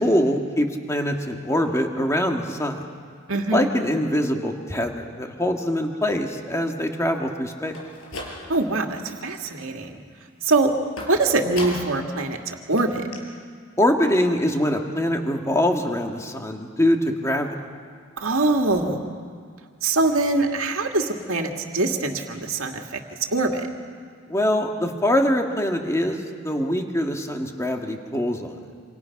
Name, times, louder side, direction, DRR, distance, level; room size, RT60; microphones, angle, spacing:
voice 1, 0.0-2.9 3.5-7.8 13.8-17.6 24.3-28.6, left 1 dB, 15° left, 2 dB, 1.9 m, -23 dB
voice 2, 3.3-3.7 8.5-10.0 10.4-10.7 11.1-13.0 18.2-19.0 19.8-23.0 23.3-23.7, right 2 dB, 75° right, 3 dB, 2.3 m, -23 dB
sound 1, 7.6-8.8 9.2-9.7 11.0-12.1 12.4-12.5 12.8-12.9 13.1-13.2, left 1 dB, 85° left, 5.4 m, -36 dB
27.5 x 27.0 x 6.0 m, 2.1 s
head